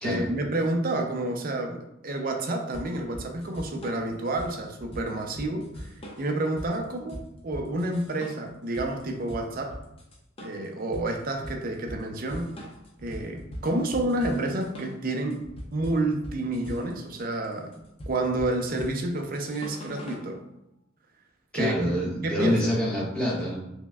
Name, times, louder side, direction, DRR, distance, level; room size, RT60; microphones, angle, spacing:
voice 1, 0.0-5.9 6.2-9.8 10.4-12.5 13.0-15.4 15.7-17.8 18.1-20.4 21.5-21.9 22.2-22.7, right 2 dB, 45° right, 3 dB, 0.5 m, -29 dB
sound 1, 2.7-20.3, equal, 30° left, 0.6 m, -41 dB
voice 2, 21.5-23.6, equal, 5° left, -6 dB, 1.0 m, -26 dB
5.8 x 2.1 x 2.3 m, 0.85 s
head